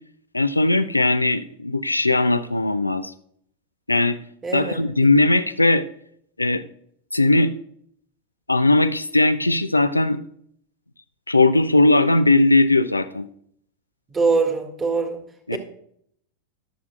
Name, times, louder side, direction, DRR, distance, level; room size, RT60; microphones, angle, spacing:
voice 1, 0.3-3.1 3.9-4.2 4.5-5.8 6.4-6.6 7.1-7.5 8.5-10.2 11.3-13.3 15.5-15.6, left 2 dB, 85° left, 10 dB, 0.4 m, -18 dB
voice 2, 4.4-5.1 14.1-15.2 15.5-15.6, right 4 dB, 20° right, 4 dB, 1.9 m, -23 dB
21.5 x 7.2 x 2.4 m, 0.66 s
figure-of-eight pair, 90°, 0 cm